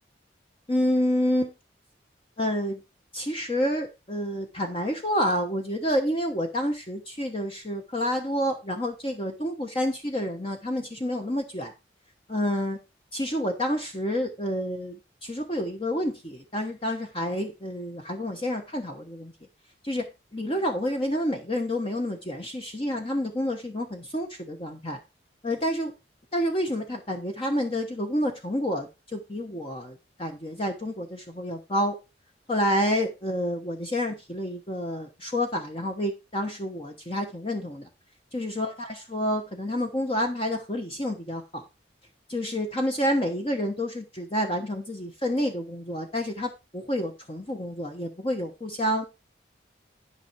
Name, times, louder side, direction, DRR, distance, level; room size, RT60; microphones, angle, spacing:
voice 1, 0.7-1.5 2.4-2.8 3.1-11.7 12.3-12.8 13.1-19.3 19.8-20.1 20.3-25.0 25.4-25.9 26.3-32.0 32.5-37.9 38.3-41.6 42.3-49.0, equal, 30° left, 4 dB, 1.1 m, -29 dB
11.5 x 5.6 x 4.6 m, 0.27 s
head